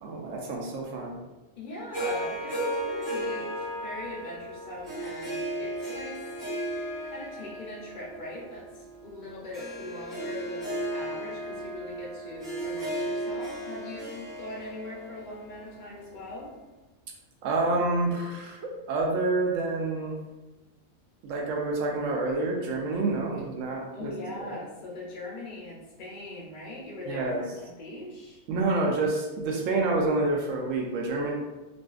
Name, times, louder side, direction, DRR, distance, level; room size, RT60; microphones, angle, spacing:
voice 1, 0.0-1.2 17.4-20.2 21.2-24.1 24.4-24.5 27.0-27.4 28.5-31.3, right 2 dB, 70° right, 0 dB, 0.9 m, -28 dB
voice 2, 1.6-6.2 7.0-16.5 23.9-28.4, left 1 dB, 55° left, -5 dB, 0.5 m, -41 dB
Harp, 1.9-16.3, right 1 dB, 15° right, 1.2 m, -35 dB
2.5 x 2.4 x 2.3 m, 1.1 s
omnidirectional pair, 1.4 m